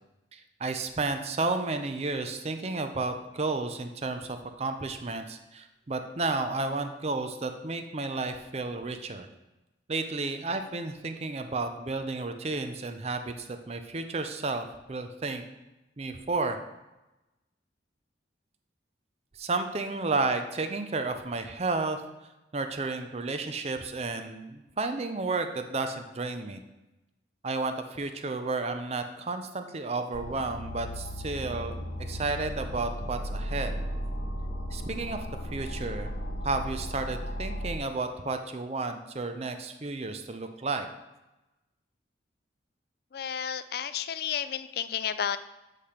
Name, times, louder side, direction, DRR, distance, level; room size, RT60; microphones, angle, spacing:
voice 1, 0.3-9.3 9.9-15.4 16.0-16.6 19.3-22.0 22.5-26.6 27.4-31.8 32.1-33.8 34.7-36.1 36.4-40.9, right 3 dB, 35° right, 7 dB, 0.5 m, -32 dB
sound 1, 30.1-37.8, equal, 75° left, 1.2 m, -35 dB
voice 2, 43.1-45.4, left 8 dB, 55° left, 12 dB, 0.4 m, -32 dB
8.6 x 3.3 x 5.7 m, 0.99 s
head